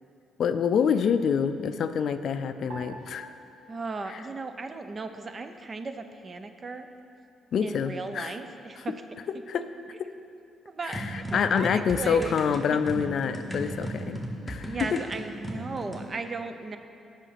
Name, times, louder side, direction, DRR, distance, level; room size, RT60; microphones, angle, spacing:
voice 1, 0.4-3.3 4.1-4.2 7.5-8.4 8.8-8.9 9.5-9.7 10.0-10.1 10.8-14.2 14.5-14.7, left 7 dB, 65° left, 10 dB, 0.4 m, -27 dB
sound 1, 2.7-5.2 5.5-6.4 7.0-7.4, right 2 dB, 90° right, 1.0 m, -49 dB
voice 2, 3.7-6.9 7.6-8.9 10.7-12.4 12.7-12.8 14.4-16.8, right 3 dB, 35° right, 8 dB, 0.5 m, -36 dB
sound 2, 10.9-16.1, right 1 dB, ahead, 1.1 m, -36 dB
8.1 x 5.7 x 5.8 m, 2.6 s
cardioid pair, 90°, 0 cm